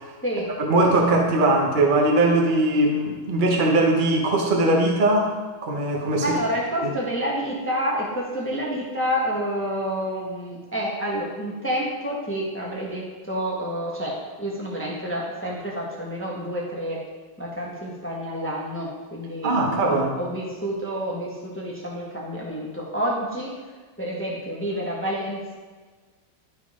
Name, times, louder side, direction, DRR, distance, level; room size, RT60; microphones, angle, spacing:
voice 1, 0.6-5.3 5.6-6.2 19.4-20.1, right 2 dB, 45° right, 0 dB, 0.6 m, -20 dB
voice 2, 6.2-17.0 17.4-23.5 24.0-25.6, equal, 10° left, -3 dB, 0.8 m, -29 dB
11.5 x 4.0 x 3.6 m, 1.4 s
omnidirectional pair, 2.2 m